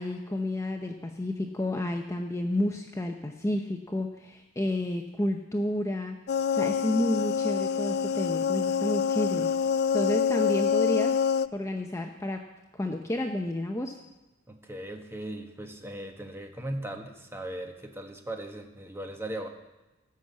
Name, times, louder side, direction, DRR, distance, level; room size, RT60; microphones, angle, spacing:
voice 1, 0.0-6.2 6.5-9.5 9.9-11.1 11.5-12.4 12.7-14.0, left 1 dB, 15° left, 3 dB, 0.7 m, -30 dB
sound 1, 6.3-11.5, left 7 dB, 55° left, 0.3 m, -26 dB
voice 2, 14.5-19.5, right 1 dB, 15° right, 4 dB, 1.4 m, -38 dB
17.0 x 6.2 x 7.5 m, 1.1 s
head